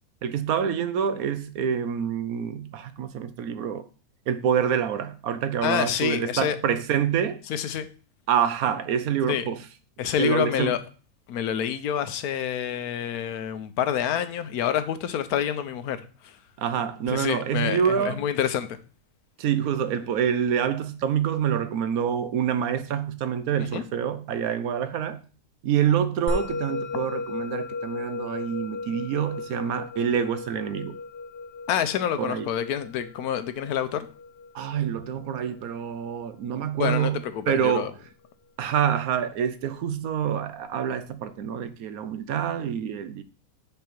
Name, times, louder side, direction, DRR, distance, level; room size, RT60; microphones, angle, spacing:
voice 1, 0.2-3.9 4.3-7.4 8.3-9.6 10.2-10.8 16.6-18.2 19.4-25.2 25.6-31.0 32.2-32.4 34.5-37.9 38.6-43.2, right 8 dB, 75° right, 1.1 m, -26 dB
voice 2, 5.6-6.6 7.5-7.9 9.3-9.5 10.0-10.8 11.3-16.4 17.1-18.8 23.6-23.8 31.7-34.1 36.8-37.9, left 9 dB, 85° left, 1.2 m, -27 dB
Musical instrument, 26.3-36.9, left 3 dB, 45° left, 1.3 m, -36 dB
5.3 x 4.3 x 5.9 m
omnidirectional pair, 1.5 m